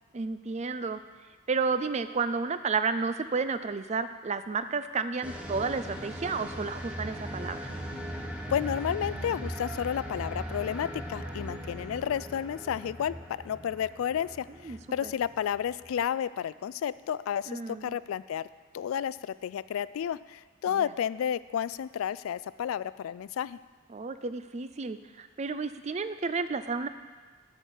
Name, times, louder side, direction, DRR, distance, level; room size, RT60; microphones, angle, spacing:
voice 1, 0.1-1.0 1.5-7.7 14.6-15.1 17.5-18.0 20.7-20.9 23.9-26.9, right 4 dB, 35° right, 11 dB, 0.4 m, -32 dB
sound 1, 5.2-16.0, equal, 5° right, 1.0 m, -39 dB
voice 2, 8.5-18.5 18.7-23.6, left 9 dB, 80° left, 18 dB, 0.3 m, -31 dB
12.5 x 4.5 x 8.2 m, 1.4 s
head